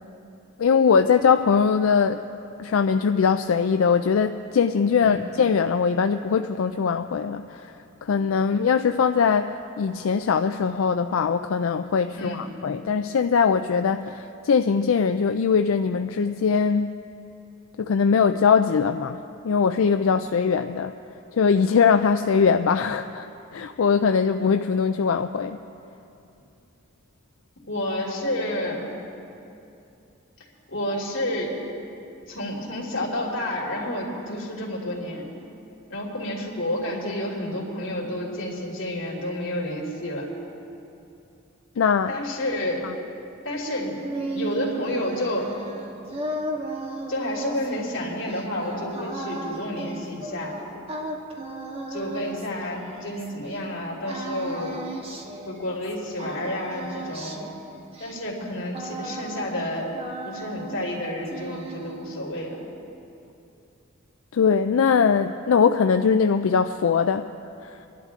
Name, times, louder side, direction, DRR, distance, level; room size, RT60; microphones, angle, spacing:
voice 1, 0.6-2.2 2.6-7.7 8.0-16.9 17.8-19.2 19.4-20.9 21.4-23.3 23.5-25.6 41.8-42.1 64.3-67.3, left 6 dB, 90° left, 8 dB, 0.4 m, -21 dB
voice 2, 12.1-12.4 27.7-28.8 30.7-31.5 32.3-35.3 35.9-40.3 42.1-42.9 43.4-44.0 44.3-45.5 47.1-50.5 51.9-54.8 55.4-57.5 58.0-59.9 60.2-62.6, left 1 dB, 65° left, -4 dB, 3.2 m, -30 dB
sound 1, 43.7-53.6 54.1-55.9 56.2-59.7 59.9-61.0 61.3-62.2, right 2 dB, 30° right, 1.4 m, -35 dB
26.0 x 11.5 x 3.7 m, 2.7 s
head